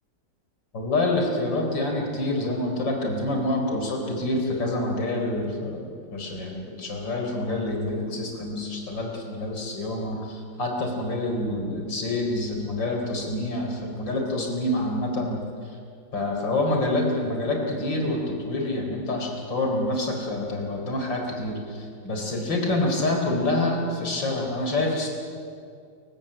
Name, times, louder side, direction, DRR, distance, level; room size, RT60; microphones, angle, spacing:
voice 1, 0.7-5.8 6.1-15.4 16.1-25.1, left 2 dB, 80° left, 2 dB, 4.9 m, -27 dB
29.0 x 15.5 x 8.9 m, 2.3 s
omnidirectional pair, 2.0 m